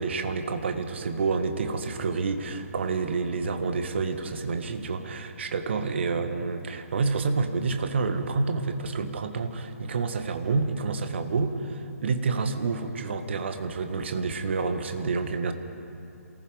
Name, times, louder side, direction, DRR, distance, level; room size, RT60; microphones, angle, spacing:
voice 1, 0.0-15.5, right 4 dB, 45° right, 7 dB, 1.7 m, -28 dB
27.5 x 19.0 x 5.1 m, 2.6 s
figure-of-eight pair, 135°, 8 cm